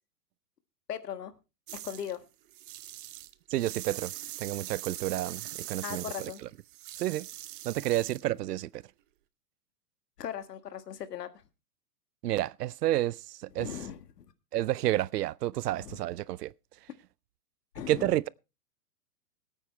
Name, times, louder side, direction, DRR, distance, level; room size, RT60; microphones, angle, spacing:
voice 1, 0.9-1.3 1.8-2.2 5.8-6.4 10.2-11.3 13.6-14.2 15.8-16.0 17.7-18.1, left 9 dB, 85° left, 1.5 m, -38 dB
sound 1, 1.7-2.1 2.5-8.3, right 14 dB, 35° right, 0.6 m, -42 dB
voice 2, 3.5-4.1 4.4-6.5 7.0-7.3 7.6-8.8 12.2-13.7 14.5-16.5 17.9-18.3, right 14 dB, 85° right, 0.6 m, -30 dB
21.5 x 9.0 x 3.2 m
hypercardioid pair, 150°, 46 cm